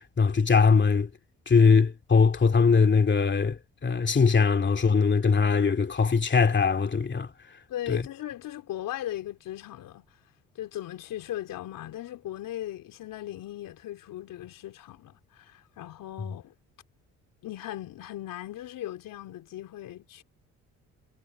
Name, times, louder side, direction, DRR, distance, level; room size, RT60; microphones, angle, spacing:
voice 1, 0.2-1.1 1.5-7.3 7.9-8.0, left 5 dB, 35° left, 2.6 m, -21 dB
voice 2, 7.7-10.0 10.6-16.5 17.4-20.2, left 13 dB, 70° left, 3.8 m, -38 dB
supercardioid pair, 65°, 34 cm